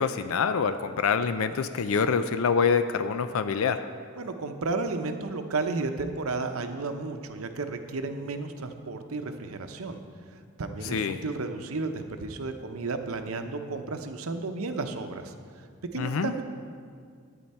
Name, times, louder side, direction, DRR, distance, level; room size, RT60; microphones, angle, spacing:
voice 1, 0.0-3.9 10.9-11.2 16.0-16.3, left 5 dB, 75° left, 10 dB, 0.4 m, -26 dB
voice 2, 4.2-10.0 10.3-15.3 15.9-16.4, right 3 dB, 85° right, 7 dB, 0.8 m, -33 dB
12.0 x 8.7 x 4.3 m, 2.1 s
head